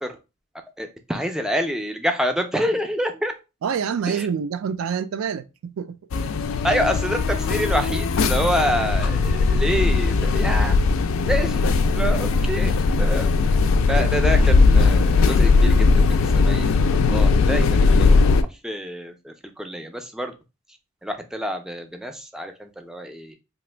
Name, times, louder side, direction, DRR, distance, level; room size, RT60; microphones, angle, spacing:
voice 1, 0.8-3.3 4.1-4.3 6.6-10.7 11.3-12.7 13.0-13.3 13.9-20.3 21.0-23.4, equal, 5° right, 0.3 m, -27 dB
voice 2, 3.6-6.0, right 7 dB, 85° right, 0.3 m, -26 dB
sound 1, 6.1-18.4, left 4 dB, 80° left, 0.3 m, -18 dB
2.9 x 2.4 x 3.2 m
head